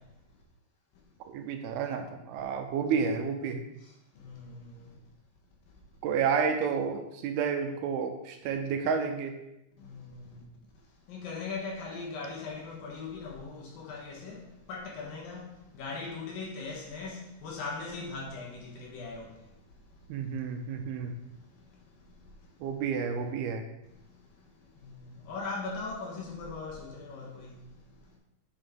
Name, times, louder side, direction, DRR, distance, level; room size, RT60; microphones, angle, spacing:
voice 1, 1.3-3.7 6.0-9.4 20.1-21.1 22.6-23.6, right 6 dB, 80° right, 2.6 m, -30 dB
voice 2, 4.2-4.6 9.8-10.1 11.1-14.4 14.7-15.5 15.7-19.2 24.8-25.0 25.3-27.5, left 4 dB, 65° left, 2.9 m, -39 dB
8.8 x 5.9 x 3.7 m
omnidirectional pair, 4.6 m